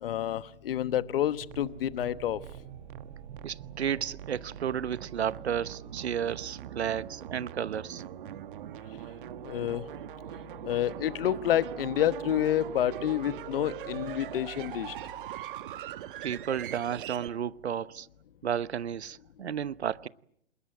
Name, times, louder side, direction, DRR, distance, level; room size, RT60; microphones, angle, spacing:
voice 1, 0.0-2.4 9.4-9.8 10.6-14.9, left 11 dB, 55° left, 1.1 m, -29 dB
sound 1, 1.4-17.3, right 12 dB, 50° right, 1.6 m, -42 dB
voice 2, 3.4-8.0 16.2-18.1 18.4-20.1, right 8 dB, 65° right, 1.0 m, -32 dB
28.0 x 20.0 x 9.1 m
figure-of-eight pair, 120°, 34 cm